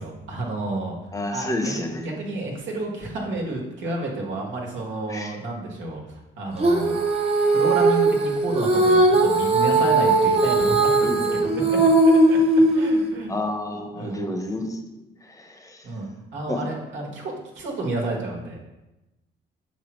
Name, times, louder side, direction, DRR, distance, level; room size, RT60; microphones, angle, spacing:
voice 1, 0.0-1.0 1.3-7.0 7.5-11.8 12.1-12.4 12.7-13.3 13.9-14.2 15.8-18.6, right 2 dB, 70° right, 0 dB, 1.5 m, -31 dB
voice 2, 1.1-2.1 5.1-5.3 11.0-11.7 13.3-14.8 15.2-15.8 16.5-16.6, left 1 dB, 15° left, 4 dB, 1.0 m, -30 dB
Female singing, 6.6-13.1, right 2 dB, 30° right, 1.0 m, -19 dB
5.9 x 5.3 x 3.1 m, 0.99 s
cardioid pair, 90°, 20 cm